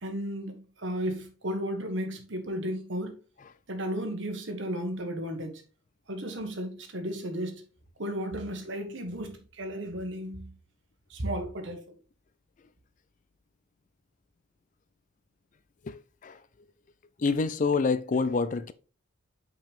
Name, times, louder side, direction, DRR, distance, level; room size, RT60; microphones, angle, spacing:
voice 1, 0.0-3.2 3.7-5.6 6.1-7.6 8.0-10.5 11.1-11.8, equal, 60° right, 1.5 m, -34 dB
voice 2, 15.9-16.4 17.2-18.7, left 4 dB, 40° left, 0.4 m, -27 dB
5.7 x 5.2 x 3.5 m
head